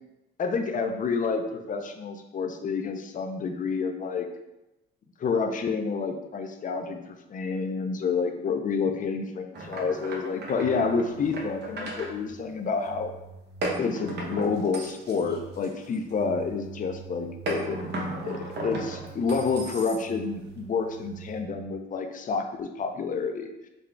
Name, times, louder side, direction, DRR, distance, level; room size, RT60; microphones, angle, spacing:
voice 1, 0.4-4.3 5.2-13.1 13.8-17.8 18.2-23.5, left 5 dB, 40° left, 6 dB, 0.5 m, -29 dB
sound 1, 9.5-12.1 13.6-16.2 17.5-20.3, right 1 dB, 60° right, 0.8 m, -35 dB
sound 2, 10.6-21.7, right 6 dB, 85° left, 0.7 m, -47 dB
3.8 x 2.3 x 3.3 m, 0.94 s
cardioid pair, 90°, 20 cm